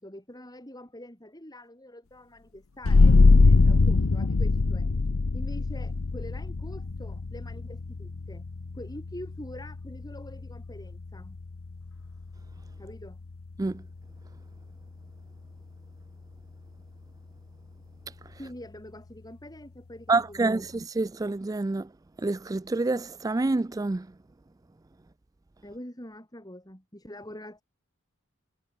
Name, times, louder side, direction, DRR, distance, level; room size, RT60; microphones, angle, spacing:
voice 1, 0.0-4.9 5.3-8.4 8.7-11.4 12.8-13.2 18.4-20.7 25.6-27.6, left 1 dB, 20° left, 7.7 m, -45 dB
sound 1, 2.8-14.1, left 3 dB, 85° left, 0.7 m, -24 dB
voice 2, 20.1-21.9 22.2-24.1, right 3 dB, 15° right, 0.3 m, -27 dB
head